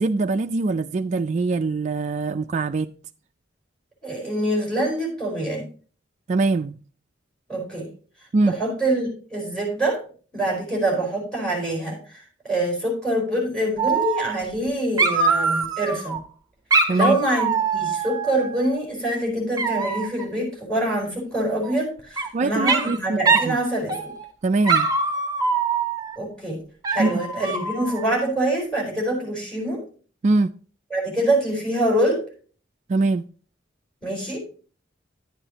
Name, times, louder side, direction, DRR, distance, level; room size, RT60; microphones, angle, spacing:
voice 1, 0.0-2.9 6.3-6.7 8.3-8.6 16.9-17.2 22.3-23.2 23.4-23.6 24.4-24.9 27.0-27.2 30.2-30.5 32.9-33.2, right 3 dB, 35° right, 0.3 m, -22 dB
voice 2, 4.0-5.7 7.5-7.9 8.4-10.0 10.3-16.2 16.9-24.1 26.2-26.6 26.9-29.8 30.9-32.2 34.0-34.4, right 1 dB, 5° left, 4.6 m, -25 dB
Dog, 13.8-14.7 15.0-16.2 16.7-18.8 19.6-20.2 21.6-22.3 22.7-23.0 23.3-23.5 23.9-24.3 24.6-26.2 26.8-28.1, right 4 dB, 20° right, 0.9 m, -23 dB
11.0 x 9.1 x 2.9 m
head